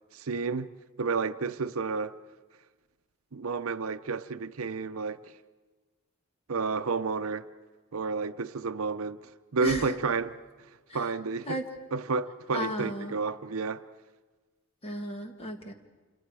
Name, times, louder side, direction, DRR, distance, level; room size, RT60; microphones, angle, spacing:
voice 1, 0.1-0.7 1.0-2.1 3.3-5.2 6.5-7.4 7.9-9.2 9.5-10.3 10.9-11.6 11.9-13.8, right 4 dB, 65° right, 0.7 m, -30 dB
voice 2, 12.5-13.1 14.8-15.7, equal, 25° left, 1.8 m, -34 dB
28.0 x 28.0 x 4.8 m
head